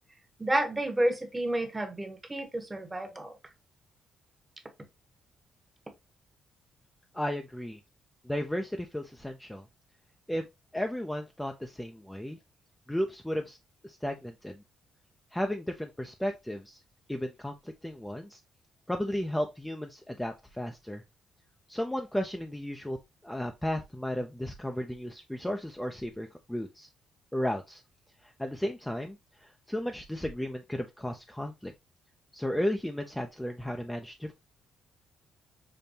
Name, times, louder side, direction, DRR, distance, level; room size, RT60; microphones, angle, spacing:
voice 1, 0.4-3.4, right 1 dB, 15° right, 0.9 m, -30 dB
voice 2, 7.1-7.8 8.2-9.6 10.3-10.4 10.7-12.4 12.9-13.6 13.8-14.6 15.3-16.8 17.1-18.4 18.9-21.0 21.7-23.0 23.2-26.9 27.3-27.8 28.2-31.7 32.3-34.3, equal, 5° left, 0.4 m, -34 dB
5.2 x 2.2 x 2.7 m
cardioid pair, 90°, 0 cm